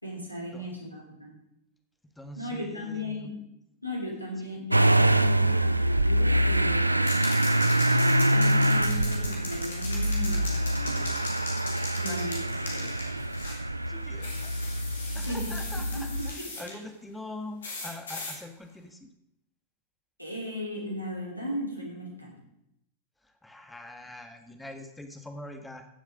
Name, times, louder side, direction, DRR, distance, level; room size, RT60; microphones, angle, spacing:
voice 1, 0.0-1.3 2.4-3.4 3.8-7.3 8.2-11.1 11.9-12.9 15.1-16.4 20.2-22.4, left 1 dB, 85° left, 0 dB, 3.3 m, -37 dB
voice 2, 2.2-3.3 4.4-4.5 12.0-12.3 13.9-14.5 15.1-19.1 23.2-25.9, left 1 dB, 5° left, 5 dB, 1.6 m, -43 dB
Motor vehicle (road) / Engine starting, 4.7-16.3, right 1 dB, 85° right, 0.4 m, -25 dB
sound 1, 7.0-13.6 14.2-16.7 17.6-18.4, left 2 dB, 65° left, 3.2 m, -39 dB
15.5 x 7.3 x 5.1 m, 0.83 s
figure-of-eight pair, 90°, 0 cm